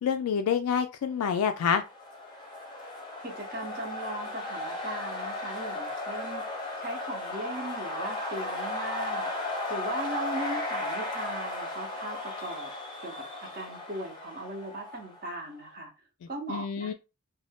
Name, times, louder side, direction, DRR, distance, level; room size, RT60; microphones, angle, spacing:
voice 1, 0.0-1.8 16.5-16.9, left 7 dB, 80° left, 0.3 m, -27 dB
sound 1, 1.6-15.4, left 2 dB, 20° left, 0.6 m, -35 dB
voice 2, 3.2-6.4 6.8-9.3 9.7-12.7 13.0-15.9 16.3-16.9, right 1 dB, 40° right, 0.7 m, -38 dB
2.5 x 2.2 x 3.3 m
head